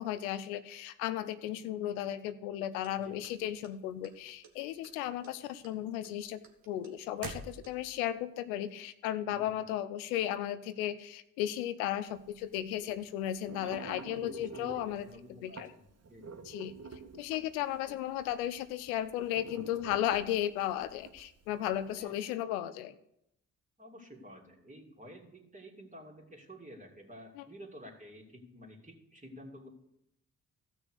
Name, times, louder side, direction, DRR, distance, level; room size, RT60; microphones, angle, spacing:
voice 1, 0.0-6.4 6.7-15.1 15.4-15.7 16.4-22.9 27.4-27.5, left 12 dB, 85° left, 12 dB, 0.6 m, -35 dB
sound 1, 2.8-4.1 4.4-5.0 5.2-8.0, right 4 dB, 55° right, 1.7 m, -46 dB
sound 2, 12.1-22.1, right 4 dB, 40° right, 1.3 m, -49 dB
voice 2, 13.6-16.5 17.9-18.0 21.9-22.1 23.8-29.7, equal, 20° right, 0 dB, 3.0 m, -51 dB
14.5 x 6.3 x 6.5 m, 0.78 s
hypercardioid pair, 40°, 41 cm